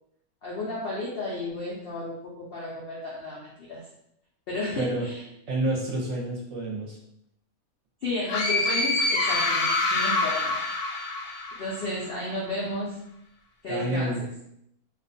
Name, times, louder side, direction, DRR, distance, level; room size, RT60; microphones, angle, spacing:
voice 1, 0.4-3.8 4.5-5.2 8.0-10.6 11.6-13.0 13.6-14.3, left 2 dB, 70° left, -5 dB, 0.5 m, -33 dB
voice 2, 4.8-5.1 5.5-7.0 13.7-14.2, right 1 dB, 60° right, -3 dB, 0.9 m, -28 dB
sound 1, 8.3-12.0, left 2 dB, 90° left, 1.1 m, -26 dB
2.5 x 2.2 x 2.5 m, 0.76 s
omnidirectional pair, 1.6 m